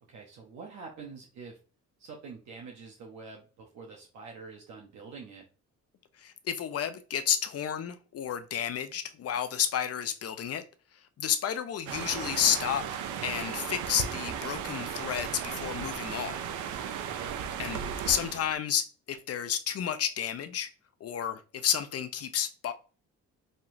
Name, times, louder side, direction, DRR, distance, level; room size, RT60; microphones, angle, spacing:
voice 1, 0.1-1.6 2.0-5.4 17.0-17.4, right 4 dB, 65° right, 0.9 m, -46 dB
voice 2, 6.2-10.6 11.2-12.8 13.2-16.4 17.6-20.7 21.0-22.7, left 9 dB, 55° left, 0.6 m, -31 dB
sound 1, 11.9-18.5, right 8 dB, 85° right, 0.6 m, -36 dB
5.4 x 2.9 x 2.6 m
cardioid pair, 90°, 30 cm